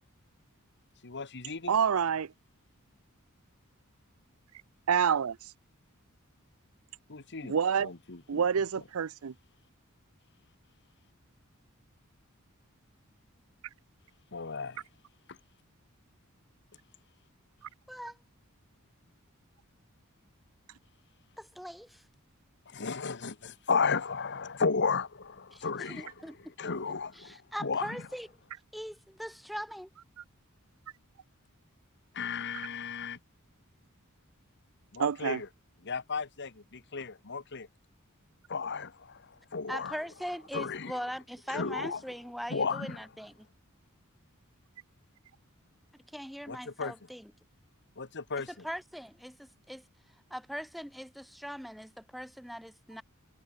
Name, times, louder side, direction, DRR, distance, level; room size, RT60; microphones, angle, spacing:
voice 1, 1.0-1.7 7.1-7.5 7.8-8.4 14.3-14.8 22.7-26.1 26.6-28.0 32.1-33.2 34.9-35.5 35.8-37.7 38.5-40.0 40.5-40.9 41.5-42.0 42.5-43.0 46.5-46.9 48.0-48.5, left 5 dB, 55° left, 1.5 m, -34 dB
voice 2, 1.7-2.3 4.9-5.4 7.4-7.9 8.3-9.3 35.0-35.4, right 7 dB, 75° right, 0.5 m, -27 dB
voice 3, 21.4-22.0 25.5-26.4 27.1-28.3 28.7-29.9 39.7-43.5 46.1-47.3 48.5-49.8 50.3-53.0, equal, ahead, 1.7 m, -41 dB
head